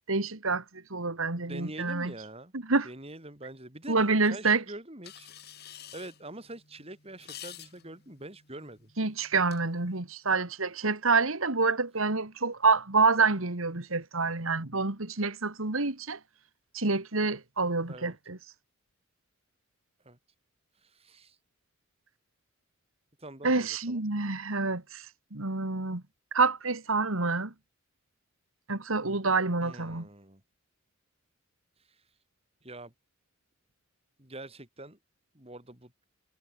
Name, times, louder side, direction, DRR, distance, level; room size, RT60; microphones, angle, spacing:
voice 1, 0.1-0.6 0.9-2.1 2.7-2.9 3.9-4.6 9.0-16.2 16.7-18.4 23.4-25.1 25.3-26.0 26.3-27.5 28.7-30.1, right 4 dB, 90° right, 2.3 m, -27 dB
voice 2, 1.3-2.5 2.8-4.0 4.2-5.3 5.9-8.9 17.9-18.1 20.0-20.2 20.8-21.4 23.2-24.0 29.6-30.4 31.9-32.0 32.6-32.9 34.2-35.0 35.3-35.9, right 1 dB, 30° right, 5.0 m, -45 dB
sound 1, 5.0-10.0, left 10 dB, 50° left, 5.2 m, -50 dB
head